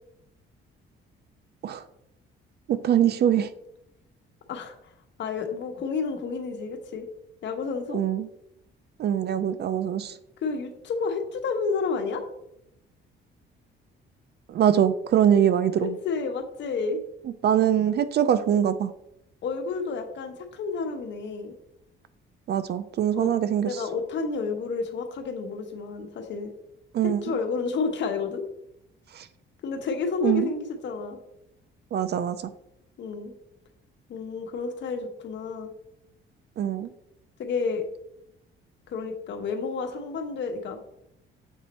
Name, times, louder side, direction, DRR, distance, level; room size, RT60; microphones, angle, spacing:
voice 1, 2.7-3.5 7.9-8.3 9.0-10.1 14.5-15.9 17.4-18.9 22.5-23.8 26.9-27.2 29.2-29.3 30.2-30.5 31.9-32.4 36.6-36.9, right 9 dB, 55° right, 13 dB, 0.4 m, -23 dB
voice 2, 4.5-4.9 5.2-7.1 7.4-8.0 10.4-12.2 15.8-17.0 19.4-21.5 23.1-23.3 23.6-26.5 27.0-28.4 29.6-31.2 33.0-33.3 34.1-35.7 37.4-37.8 38.9-40.8, left 4 dB, 60° left, 5 dB, 1.1 m, -30 dB
7.2 x 4.2 x 4.1 m, 0.80 s
cardioid pair, 125°, 21 cm